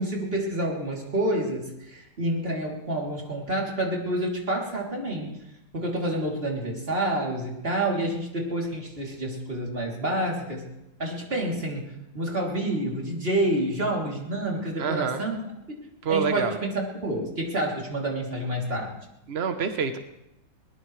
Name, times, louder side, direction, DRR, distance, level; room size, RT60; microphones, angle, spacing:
voice 1, 0.0-5.4 5.7-10.6 11.0-15.4 16.1-19.0, right 1 dB, 25° right, -2 dB, 3.2 m, -28 dB
voice 2, 14.8-15.2 16.0-16.6 19.3-20.0, right 6 dB, 65° right, 8 dB, 0.6 m, -26 dB
22.0 x 19.5 x 3.2 m, 0.88 s
omnidirectional pair, 2.4 m